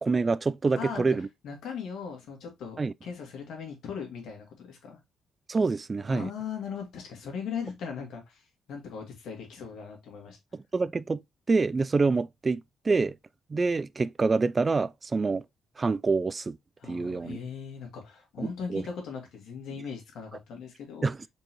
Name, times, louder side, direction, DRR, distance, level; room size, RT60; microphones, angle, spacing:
voice 1, 0.0-1.3 2.8-2.9 5.5-6.3 10.5-11.2 11.5-12.6 12.9-13.2 13.5-15.4 15.8-16.6 16.9-17.4 18.4-18.8 21.0-21.2, right 4 dB, 30° right, 0.3 m, -26 dB
voice 2, 0.7-1.2 1.4-5.0 6.1-8.4 8.7-10.4 16.8-21.1, left 6 dB, 75° left, 2.1 m, -39 dB
4.5 x 3.9 x 3.0 m
cardioid pair, 90°, 0 cm